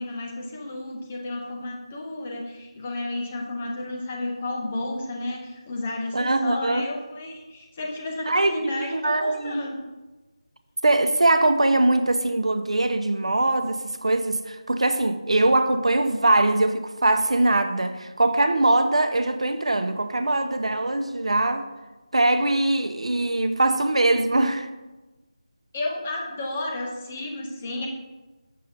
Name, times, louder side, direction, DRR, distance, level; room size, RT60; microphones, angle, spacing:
voice 1, 0.0-9.8 25.7-27.9, left 2 dB, 10° left, 0.5 m, -32 dB
voice 2, 6.1-6.8 8.3-9.6 10.8-21.7 22.1-24.7, right 2 dB, 70° right, 0.7 m, -22 dB
6.6 x 6.5 x 4.1 m
figure-of-eight pair, 175°, 3 cm